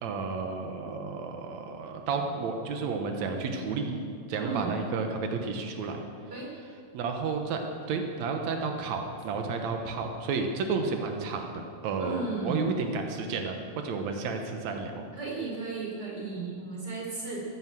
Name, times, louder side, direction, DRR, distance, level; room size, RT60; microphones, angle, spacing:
voice 1, 0.0-4.0 4.3-6.0 6.9-15.0, right 4 dB, 90° right, 4 dB, 1.6 m, -32 dB
voice 2, 4.4-4.7 6.3-6.5 12.0-12.7 15.1-17.4, right 3 dB, 25° right, -3 dB, 4.3 m, -34 dB
15.5 x 11.5 x 7.7 m, 2.3 s
omnidirectional pair, 4.9 m